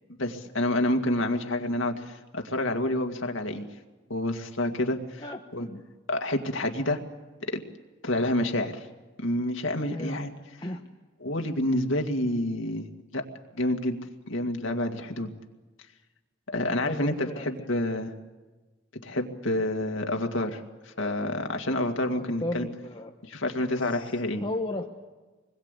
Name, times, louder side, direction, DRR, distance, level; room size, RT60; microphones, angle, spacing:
voice 1, 0.2-3.7 4.1-5.2 5.5-5.7 6.1-7.0 7.5-7.6 8.0-8.8 9.2-10.3 11.2-12.9 13.1-13.2 13.5-14.0 14.3-15.3 16.5-18.1 19.0-22.7 23.2-24.4, left 1 dB, 90° left, 4 dB, 2.2 m, -28 dB
voice 2, 5.2-5.8 9.9-10.3 10.6-10.8 16.8-17.4 22.2-23.1 23.8-24.1 24.4-24.9, left 1 dB, 25° left, 2 dB, 1.2 m, -35 dB
26.5 x 21.0 x 8.3 m, 1.2 s
head